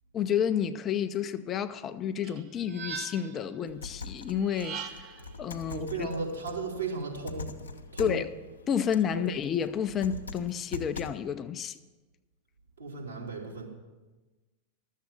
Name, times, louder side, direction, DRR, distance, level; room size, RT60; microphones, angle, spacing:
voice 1, 0.1-5.1 5.4-6.1 8.0-8.3 8.7-11.8, left 8 dB, 25° left, 0.5 m, -30 dB
sound 1, 2.2-3.5 4.4-5.3, right 6 dB, 40° right, 0.9 m, -40 dB
sound 2, 3.7-11.1, left 3 dB, 75° left, 0.9 m, -43 dB
voice 2, 5.7-7.5 7.9-8.2 9.1-9.3 12.8-13.7, right 3 dB, 75° right, 3.2 m, -35 dB
12.5 x 7.4 x 7.4 m
figure-of-eight pair, 90°, 0 cm